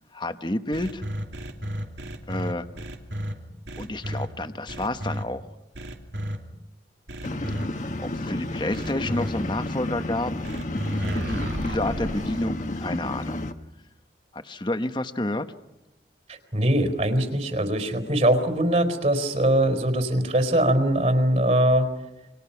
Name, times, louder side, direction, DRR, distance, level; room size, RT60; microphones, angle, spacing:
voice 1, 0.1-1.0 2.3-2.7 3.8-5.4 8.1-10.3 10.9-13.4 14.3-15.5, left 1 dB, 25° left, 9 dB, 1.1 m, -29 dB
sound 1, 0.7-3.3 3.7-4.3 4.7-5.2 5.7-6.4 7.1-7.7 8.7-9.3 10.4-12.4, equal, 75° right, 2.8 m, -32 dB
sound 2, 7.2-13.5, left 1 dB, 45° left, 1.4 m, -31 dB
voice 2, 16.3-21.9, right 1 dB, 40° right, 7 dB, 4.4 m, -22 dB
29.0 x 26.0 x 5.9 m, 0.95 s
head